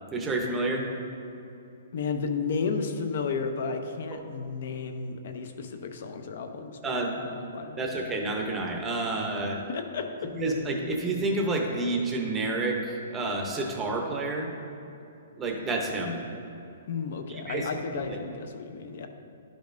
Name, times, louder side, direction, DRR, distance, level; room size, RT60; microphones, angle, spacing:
voice 1, 0.1-0.9 6.8-7.2 7.7-9.6 10.3-14.5 15.4-16.2 17.3-17.8 18.1-18.2, right 2 dB, 10° right, 1 dB, 0.7 m, -29 dB
voice 2, 1.9-7.0 7.5-7.9 9.7-10.1 16.9-19.1, left 5 dB, 50° left, 6 dB, 0.6 m, -32 dB
11.5 x 5.1 x 2.6 m, 2.8 s
hypercardioid pair, 170°, 0 cm